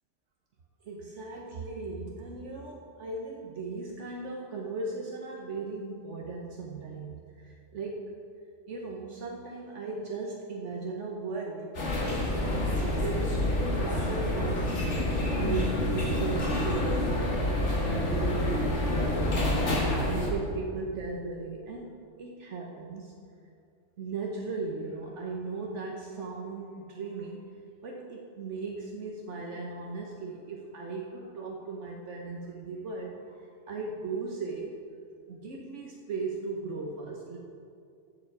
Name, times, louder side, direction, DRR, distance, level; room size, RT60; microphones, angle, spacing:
voice 1, 0.8-8.2 8.7-13.5 13.7-23.2 24.0-27.4 27.8-34.8 35.3-37.4, right 3 dB, 75° right, 0 dB, 1.3 m, -37 dB
sound 1, 11.7-20.3, left 1 dB, 70° left, 2.1 m, -28 dB
14.0 x 7.6 x 4.7 m, 2.4 s
omnidirectional pair, 1.2 m